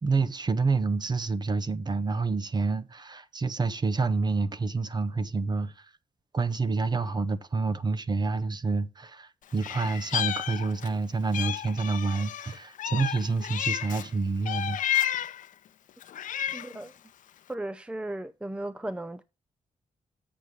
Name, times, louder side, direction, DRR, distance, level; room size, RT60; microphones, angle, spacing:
voice 1, 0.0-5.7 6.3-14.8, right 4 dB, 30° right, 0.8 m, -28 dB
Meow, 9.6-11.0 11.3-14.1 14.5-15.5 16.0-16.8, left 11 dB, 80° left, 0.7 m, -31 dB
voice 2, 16.5-16.9 17.5-19.2, right 1 dB, 10° right, 0.5 m, -36 dB
7.7 x 6.8 x 4.7 m
cardioid pair, 105°, 13 cm